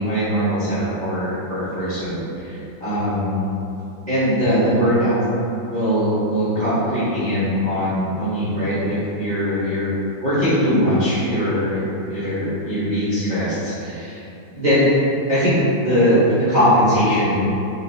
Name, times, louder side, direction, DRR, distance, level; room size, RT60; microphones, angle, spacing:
voice 1, 0.0-3.4 4.1-5.2 5.7-9.9 10.2-14.2 14.5-14.8 15.3-17.4, equal, 30° right, -13 dB, 1.1 m, -21 dB
5.5 x 2.3 x 2.6 m, 2.7 s
omnidirectional pair, 2.0 m